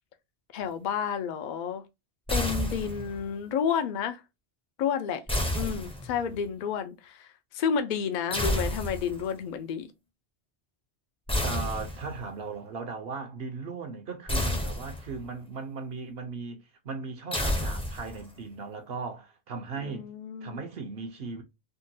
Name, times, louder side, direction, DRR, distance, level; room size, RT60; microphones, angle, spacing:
voice 1, 0.5-1.8 2.3-4.2 4.8-5.2 5.5-7.3 7.5-9.9 19.8-20.7, left 7 dB, 55° left, 0.6 m, -30 dB
sound 1, 2.3-3.2 5.3-6.4 8.3-9.3 11.3-12.3 14.3-15.3 17.3-18.3, left 1 dB, 5° left, 0.5 m, -30 dB
voice 2, 11.4-20.1 20.4-21.4, right 4 dB, 65° right, 0.9 m, -37 dB
3.7 x 2.1 x 2.6 m
omnidirectional pair, 1.1 m